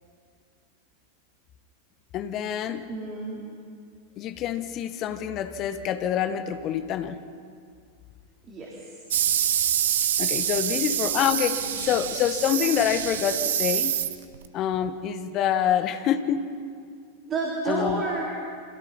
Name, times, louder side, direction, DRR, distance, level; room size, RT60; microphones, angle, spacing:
voice 1, 2.1-2.9 4.2-7.2 10.2-13.9 14.5-16.5 17.7-18.0, left 9 dB, 35° left, 10 dB, 1.3 m, -26 dB
voice 2, 2.9-3.6 8.4-9.0 11.6-11.8 15.6-15.9 17.3-18.4, right 3 dB, 25° right, -3 dB, 3.8 m, -31 dB
sound 1, 9.1-14.5, right 10 dB, 60° right, 1.0 m, -26 dB
29.0 x 25.5 x 4.2 m, 2.2 s
figure-of-eight pair, 90°, 0 cm